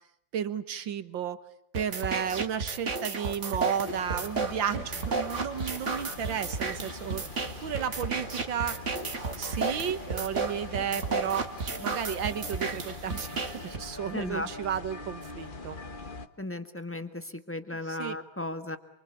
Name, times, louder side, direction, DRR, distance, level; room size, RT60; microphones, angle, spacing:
voice 1, 0.3-1.4 1.7-7.2 7.6-8.8 9.4-15.8 17.8-18.1, right 8 dB, 60° right, 12 dB, 2.1 m, -33 dB
sound 1, 1.7-13.8, right 4 dB, 35° right, 1.9 m, -33 dB
sound 2, 3.8-16.3, left 3 dB, 30° left, 1.2 m, -43 dB
voice 2, 14.1-14.5 16.4-18.8, left 1 dB, 5° left, 9 dB, 1.4 m, -35 dB
28.0 x 25.5 x 8.5 m, 0.72 s
omnidirectional pair, 2.4 m